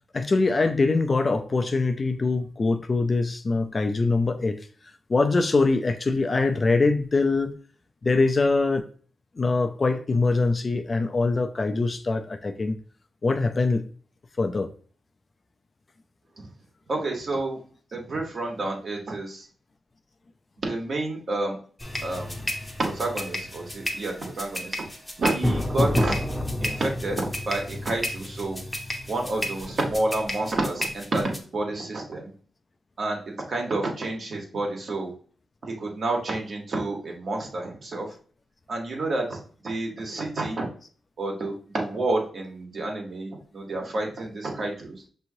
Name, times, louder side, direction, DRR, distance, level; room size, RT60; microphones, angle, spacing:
voice 1, 0.1-4.6 5.1-7.6 8.0-8.8 9.4-12.8 13.2-13.8 14.4-14.7, left 3 dB, 35° left, 7 dB, 0.4 m, -23 dB
voice 2, 16.9-17.6 17.9-19.5 20.6-21.6 22.0-22.5 22.8-24.8 25.2-26.2 26.6-28.6 29.1-32.3 33.0-35.1 35.6-38.1 38.7-40.7 41.2-45.0, right 2 dB, 55° right, 1 dB, 1.3 m, -29 dB
sound 1, 21.8-31.4, left 1 dB, 5° left, 0.8 m, -30 dB
6.1 x 3.0 x 2.7 m, 0.43 s
wide cardioid pair, 110°, 0 cm